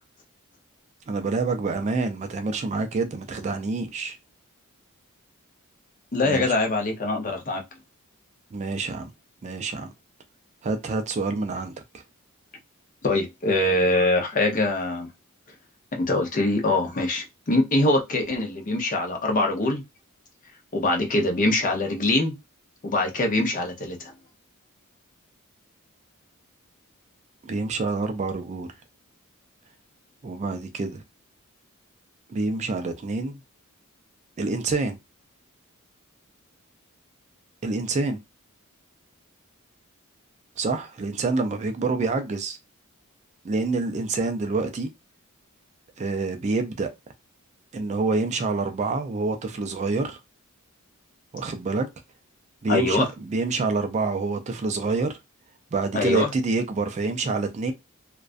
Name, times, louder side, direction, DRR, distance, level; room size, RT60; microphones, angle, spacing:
voice 1, 1.1-4.2 6.2-6.5 8.5-9.1 9.4-9.9 10.6-12.0 27.4-28.7 30.2-31.0 32.3-33.4 34.4-35.0 37.6-38.2 40.6-42.6 43.4-44.9 46.0-46.9 47.7-50.2 51.3-51.9 52.6-55.2 55.7-57.7, right 3 dB, 30° right, 0.3 m, -27 dB
voice 2, 6.1-7.6 13.0-15.1 15.9-19.8 20.7-22.4 22.8-24.1 52.7-53.1 55.9-56.3, left 2 dB, 40° left, 0.6 m, -23 dB
2.4 x 2.1 x 2.4 m
head